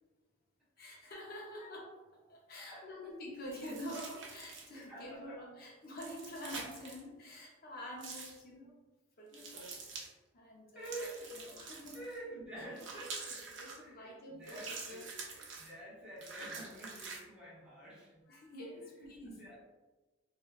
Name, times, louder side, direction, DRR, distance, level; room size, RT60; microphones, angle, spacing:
voice 1, 0.8-8.7 9.2-11.1 11.4-12.0 13.2-14.6 14.9-15.1 18.3-19.3, equal, 50° left, -2 dB, 0.5 m, -47 dB
voice 2, 2.7-3.1 4.9-5.4 9.6-9.7 10.7-11.3 11.9-13.2 13.5-18.2 19.0-19.6, right 1 dB, 5° right, -7 dB, 0.8 m, -48 dB
sound 1, 3.5-4.8 5.9-7.0 8.0-8.4 9.3-10.1 10.8-12.2 12.7-13.8 14.4-15.7 16.2-17.2, right 4 dB, 70° right, 0.6 m, -46 dB
3.2 x 2.2 x 2.3 m, 1.2 s
head